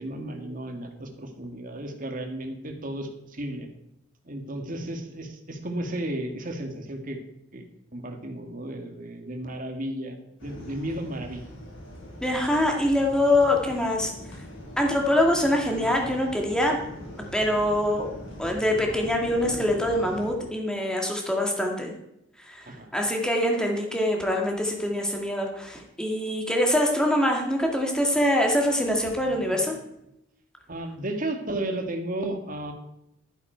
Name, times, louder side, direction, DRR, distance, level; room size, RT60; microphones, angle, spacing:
voice 1, 0.0-3.7 4.3-7.2 7.5-7.7 7.9-10.2 10.4-11.5 22.7-22.9 29.2-29.7 30.7-32.7, right 1 dB, 45° right, 4 dB, 1.8 m, -34 dB
sound 1, 10.4-20.3, left 1 dB, 80° left, 4.0 m, -41 dB
voice 2, 12.2-14.1 14.8-16.8 17.3-18.1 18.4-21.9 22.5-22.6 22.9-29.8, left 1 dB, 5° left, 1 dB, 2.1 m, -24 dB
12.0 x 9.9 x 4.5 m, 0.83 s
head